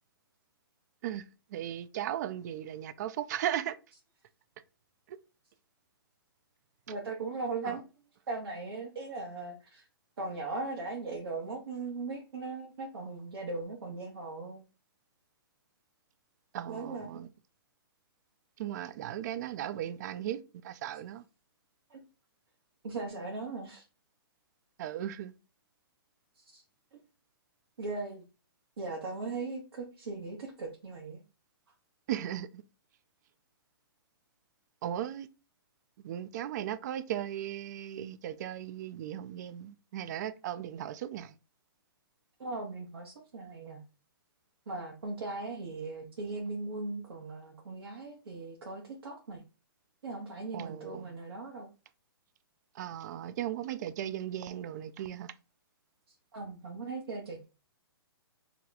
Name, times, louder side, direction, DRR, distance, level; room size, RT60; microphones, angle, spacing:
voice 1, 1.5-3.8 5.1-5.2 7.6-7.8 16.5-17.3 18.6-21.2 24.8-25.3 32.1-32.6 34.8-35.3 36.0-41.3 50.5-51.1 52.8-55.3, right 11 dB, 45° right, 0.3 m, -37 dB
voice 2, 6.9-7.8 8.3-9.9 10.2-14.6 16.7-17.2 21.9-22.0 22.8-23.8 26.4-26.6 27.8-28.2 28.8-31.2 42.4-43.8 44.7-49.4 50.0-51.7 56.1-57.5, right 3 dB, 75° right, 1.0 m, -39 dB
2.9 x 2.3 x 3.8 m
hypercardioid pair, 140°, 13 cm